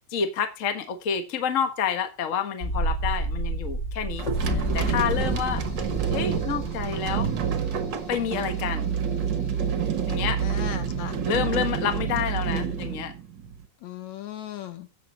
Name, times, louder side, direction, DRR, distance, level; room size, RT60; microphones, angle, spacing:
voice 1, 0.1-5.6 6.1-7.3 8.1-8.9 10.1-10.4 11.2-13.1, left 7 dB, 85° left, 0.7 m, -29 dB
sound 1, 2.6-9.4 9.7-9.8, right 1 dB, 35° left, 2.5 m, -31 dB
sound 2, 4.2-13.6, right 7 dB, 60° right, 1.2 m, -28 dB
voice 2, 4.4-5.0 10.4-11.2 13.8-14.9, left 11 dB, 65° left, 2.4 m, -38 dB
15.0 x 6.7 x 4.0 m
omnidirectional pair, 3.9 m